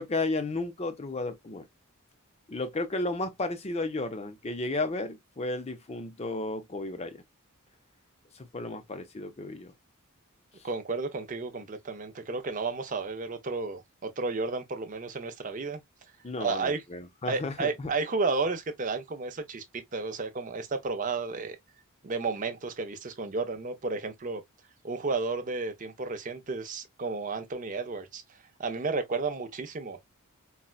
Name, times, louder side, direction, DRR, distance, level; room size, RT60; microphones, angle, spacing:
voice 1, 0.0-1.7 2.5-7.2 8.3-9.7 16.2-17.9, left 2 dB, 30° left, 0.5 m, -33 dB
voice 2, 10.6-15.8 16.4-16.8 17.2-21.6 22.0-24.4 24.8-28.2 28.6-30.0, right 4 dB, 35° right, 0.6 m, -32 dB
4.0 x 2.2 x 2.3 m
head